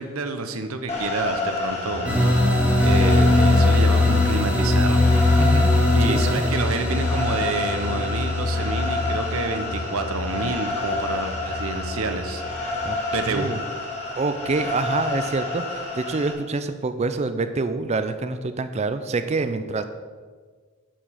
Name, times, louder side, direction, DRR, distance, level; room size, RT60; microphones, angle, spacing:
voice 1, 0.0-2.2 2.8-5.1 5.9-12.4 13.1-13.5, right 3 dB, 70° right, 8 dB, 0.8 m, -28 dB
sound 1, 0.9-16.3, left 2 dB, 30° left, 1.9 m, -30 dB
sound 2, 1.8-12.5 12.8-12.9 13.3-13.4, left 3 dB, 55° left, 0.8 m, -24 dB
sound 3, 2.0-10.8, equal, 5° right, 1.7 m, -24 dB
voice 2, 5.4-5.7 6.0-6.4 12.8-13.0 13.2-13.6 14.2-19.8, right 3 dB, 30° right, 10 dB, 0.4 m, -26 dB
8.9 x 5.1 x 6.2 m, 1.5 s
head